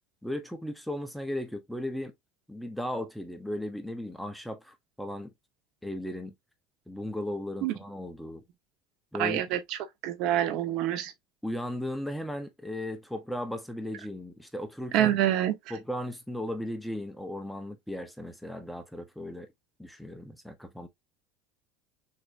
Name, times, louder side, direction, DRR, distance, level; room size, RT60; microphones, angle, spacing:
voice 1, 0.2-2.1 2.5-5.3 5.8-6.3 6.9-8.4 9.1-9.4 11.4-15.1 15.7-19.5 19.8-20.9, left 1 dB, ahead, 0.8 m, -36 dB
voice 2, 9.2-9.8 10.0-11.1 14.9-15.5, right 12 dB, 60° right, 1.1 m, -26 dB
6.5 x 2.9 x 2.6 m
supercardioid pair, 135°, 0 cm